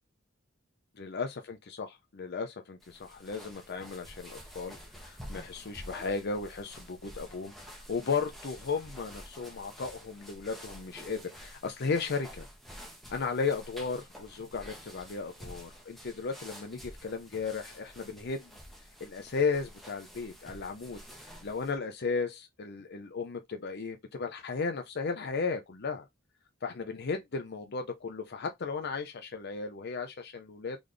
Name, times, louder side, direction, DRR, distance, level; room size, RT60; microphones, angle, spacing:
voice 1, 1.0-12.5 13.1-18.5 19.0-26.1 26.6-30.8, left 4 dB, 55° left, 0.6 m, -35 dB
sound 1, 2.8-21.8, equal, ahead, 1.2 m, -49 dB
3.9 x 3.4 x 3.3 m
head